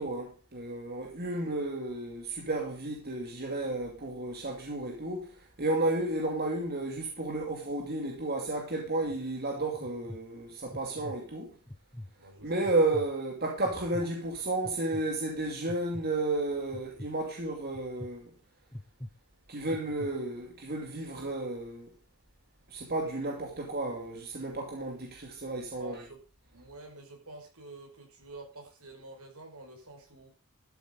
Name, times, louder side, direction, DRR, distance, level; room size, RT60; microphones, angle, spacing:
voice 1, 0.0-11.5 12.4-18.3 19.5-21.9 22.7-26.0, right 2 dB, 45° right, 2.6 m, -32 dB
voice 2, 1.3-1.7 12.2-12.8 25.8-26.2 26.5-30.3, right 2 dB, 75° right, 5.5 m, -48 dB
sound 1, 8.8-9.2 9.7-10.2 10.7-11.2 11.7-12.1 12.6-13.1 13.6-14.1 14.6-15.0 15.7-16.1 16.7-17.1 17.7-18.1 18.7-19.1 19.7-20.1, left 1 dB, 10° left, 0.8 m, -42 dB
13.0 x 8.1 x 5.3 m
head